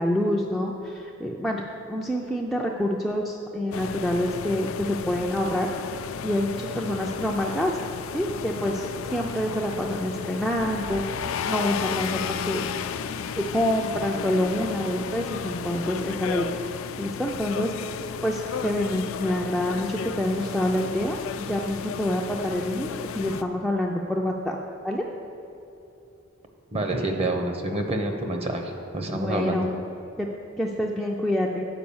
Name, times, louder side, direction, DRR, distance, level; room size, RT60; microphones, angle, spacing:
voice 1, 0.0-1.6 1.9-5.7 6.2-7.7 8.1-12.2 12.5-12.7 13.4-16.5 17.0-17.7 18.2-24.6 24.8-25.0 29.1-29.7 30.2-30.3 30.6-31.7, left 1 dB, ahead, -2 dB, 0.4 m, -27 dB
sound 1, 3.7-23.4, left 7 dB, 70° left, 0.4 m, -33 dB
voice 2, 26.7-29.7, right 2 dB, 30° right, 4 dB, 0.7 m, -27 dB
8.8 x 4.7 x 7.0 m, 2.9 s
head